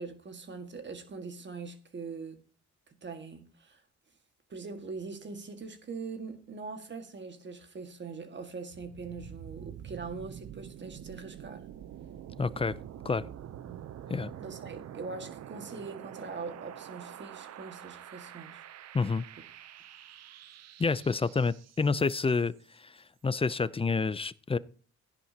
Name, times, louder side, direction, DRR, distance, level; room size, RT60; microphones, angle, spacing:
voice 1, 0.0-2.4 3.0-3.8 4.5-11.7 13.7-13.8 14.4-18.6, right 4 dB, 40° right, 1.8 m, -42 dB
sound 1, 8.7-22.5, right 10 dB, 60° right, 0.7 m, -46 dB
voice 2, 12.4-12.8 13.0-13.3 14.1-14.3 18.9-19.2 20.8-24.6, left 4 dB, 20° left, 0.5 m, -29 dB
16.0 x 10.5 x 2.9 m
cardioid pair, 90°, 30 cm